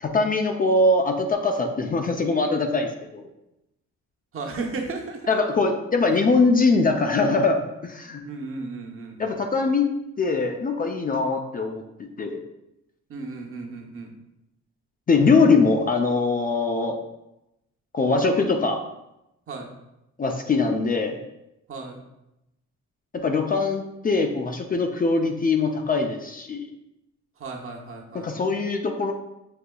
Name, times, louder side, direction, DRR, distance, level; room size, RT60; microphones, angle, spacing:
voice 1, 0.0-3.2 5.3-8.2 9.2-9.9 10.2-12.4 15.1-17.0 17.9-18.8 20.2-21.2 23.1-26.6 28.1-29.1, left 3 dB, 30° left, 4 dB, 0.4 m, -22 dB
voice 2, 4.3-5.3 8.2-9.4 13.1-14.1 19.5-19.7 21.7-22.0 27.4-28.4, right 3 dB, 45° right, 1 dB, 0.9 m, -34 dB
6.5 x 2.8 x 2.3 m, 0.90 s
cardioid pair, 90°, 30 cm